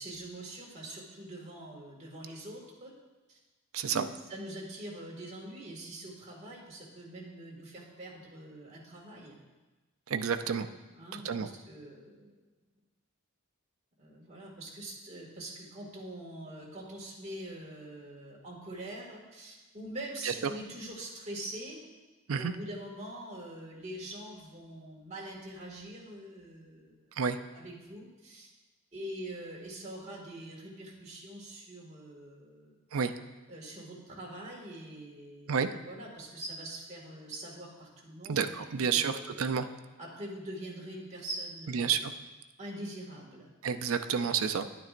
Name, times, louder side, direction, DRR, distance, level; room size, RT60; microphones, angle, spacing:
voice 1, 0.0-2.9 3.3-3.4 3.9-9.4 10.9-12.3 14.0-21.8 22.4-27.0 27.5-28.5 28.9-32.8 33.5-39.5 40.0-42.1 42.6-43.5, right 1 dB, 30° right, -4 dB, 2.0 m, -44 dB
voice 2, 3.7-4.0 10.1-10.7 11.1-11.5 20.2-20.3 22.3-22.5 27.2-27.4 32.9-33.1 35.5-35.7 38.3-39.7 41.7-42.1 43.6-44.7, right 6 dB, 70° right, 9 dB, 0.5 m, -30 dB
10.5 x 9.3 x 2.5 m, 1.2 s
head